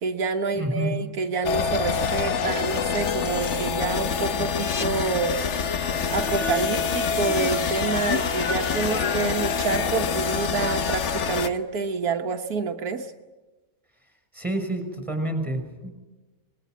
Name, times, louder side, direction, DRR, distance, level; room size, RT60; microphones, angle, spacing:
voice 1, 0.0-5.4 6.1-13.1, right 4 dB, 85° right, 4 dB, 1.7 m, -27 dB
voice 2, 0.5-0.9 14.3-15.9, right 1 dB, 5° right, 6 dB, 5.9 m, -28 dB
sound 1, 1.4-11.5, left 6 dB, 55° left, 1.2 m, -26 dB
25.0 x 20.5 x 9.2 m, 1.1 s
omnidirectional pair, 1.6 m